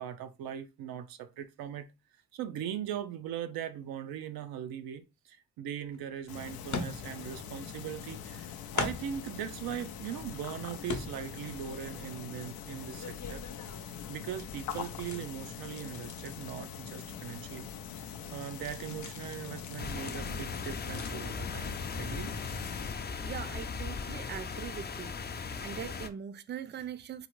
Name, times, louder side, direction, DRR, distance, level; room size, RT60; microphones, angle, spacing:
voice 1, 0.0-1.9 2.3-13.4 14.1-22.3, right 10 dB, 85° right, 0.5 m, -40 dB
sound 1, 5.9-6.0 6.7-7.4 7.7-8.4 8.7-9.3 9.8-10.4 10.9-11.5 11.9-14.0 14.3-17.5 17.8-22.0 22.3-22.6 23.1-23.2, left 4 dB, 55° left, 0.8 m, -42 dB
sound 2, 6.3-22.9, left 8 dB, 85° left, 0.5 m, -43 dB
sound 3, 19.8-26.1, left 5 dB, 30° left, 0.4 m, -38 dB
voice 2, 23.2-25.2 25.6-27.3, right 9 dB, 30° right, 0.4 m, -41 dB
3.7 x 2.0 x 3.0 m
supercardioid pair, 45°, 35 cm